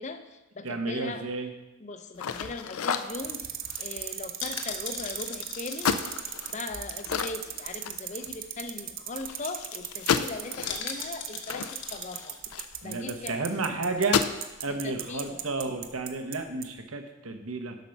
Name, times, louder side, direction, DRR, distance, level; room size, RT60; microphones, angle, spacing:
voice 1, 0.0-1.3 1.8-5.9 6.5-12.4 12.8-13.4 14.7-15.4, left 3 dB, 35° left, 8 dB, 0.6 m, -39 dB
voice 2, 0.6-1.5 12.8-14.3 14.6-17.8, right 3 dB, 80° right, 5 dB, 1.0 m, -32 dB
sound 1, 2.1-7.6 7.9-8.0 8.2-8.5 8.9-9.0 9.2-9.6 10.7-12.4 12.7-12.8, left 5 dB, 60° left, 0.9 m, -40 dB
sound 2, 2.2-5.3 5.8-8.5 8.8-8.9 9.2-13.1 13.5-13.7 14.0-14.5, left 7 dB, 90° left, 0.5 m, -33 dB
sound 3, 3.1-16.4 16.6-16.7, right 11 dB, 45° right, 0.5 m, -36 dB
8.2 x 5.8 x 5.3 m, 1.0 s
head